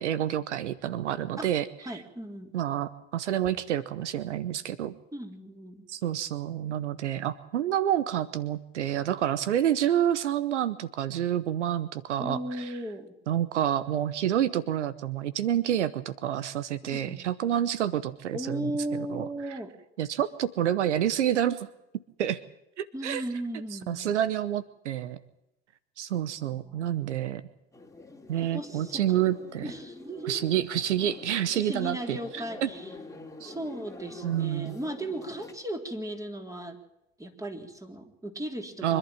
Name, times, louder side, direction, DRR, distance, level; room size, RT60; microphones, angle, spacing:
voice 1, 0.0-1.7 2.5-4.9 5.9-12.7 13.3-18.7 19.0-19.3 20.0-21.7 22.2-22.4 22.8-23.2 23.9-25.2 26.0-27.4 28.3-29.7 30.3-32.7 33.4-33.5 34.2-34.7 38.8-39.0, right 11 dB, 85° right, 17 dB, 1.0 m, -28 dB
voice 2, 1.8-2.5 5.1-5.9 12.2-13.1 16.9-17.2 18.3-19.8 22.9-24.1 26.4-27.2 28.4-29.2 29.6-30.6 31.5-32.9 33.4-36.8 37.2-39.0, right 1 dB, 10° right, 5 dB, 3.6 m, -36 dB
sound 1, 27.7-35.5, left 3 dB, 10° left, 2.8 m, -46 dB
25.5 x 11.5 x 8.9 m, 0.87 s
hypercardioid pair, 75°, 34 cm